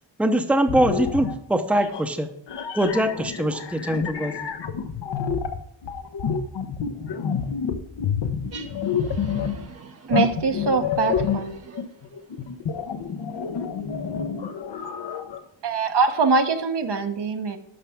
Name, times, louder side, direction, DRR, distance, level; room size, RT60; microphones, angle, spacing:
voice 1, 0.2-2.3 2.7-4.5, right 1 dB, 5° right, 5 dB, 0.8 m, -23 dB
sound 1, 0.7-1.4 1.8-2.0 2.5-9.7 10.1-15.4, left 7 dB, 60° left, 1.0 m, -28 dB
voice 2, 8.5-10.1 11.2-12.1, right 5 dB, 30° right, 2 dB, 0.8 m, -44 dB
voice 3, 10.1-11.5 15.6-17.6, right 4 dB, 55° right, 6 dB, 1.1 m, -23 dB
11.5 x 5.7 x 3.6 m, 0.75 s
cardioid pair, 100°, 49 cm